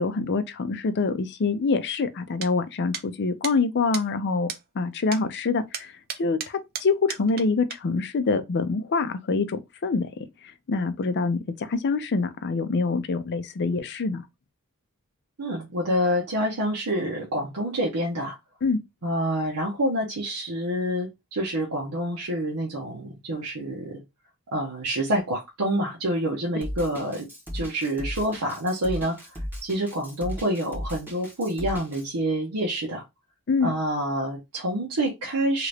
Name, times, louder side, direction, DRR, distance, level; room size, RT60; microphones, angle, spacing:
voice 1, 0.0-4.5 4.8-5.9 6.2-10.1 10.7-11.4 11.7-14.2 18.6-18.8 33.5-33.7, left 4 dB, 50° left, 0.5 m, -25 dB
sound 1, 2.4-2.5 2.9-3.0 3.4-3.6 3.9-4.1 4.5-4.6 5.1-5.2 5.7-7.4 7.7-7.8, right 8 dB, 45° right, 0.5 m, -34 dB
voice 2, 15.4-18.4 19.0-24.0 24.5-27.3 27.5-33.0 33.6-35.7, right 1 dB, 85° right, 0.9 m, -27 dB
Drum kit, 26.6-32.0, equal, 10° right, 1.1 m, -35 dB
2.8 x 2.5 x 3.2 m
head